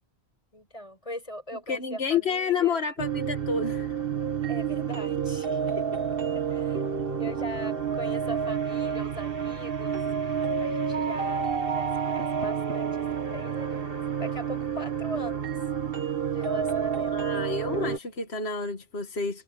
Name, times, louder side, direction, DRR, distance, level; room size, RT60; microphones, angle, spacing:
voice 1, 0.5-2.8 4.5-6.8 7.2-15.6 16.3-17.2, equal, 30° left, 8.1 m, -40 dB
voice 2, 1.7-4.0 17.1-19.4, left 6 dB, 75° left, 2.0 m, -29 dB
sound 1, 3.0-18.0, right 7 dB, 60° right, 1.8 m, -29 dB
omnidirectional pair, 1.1 m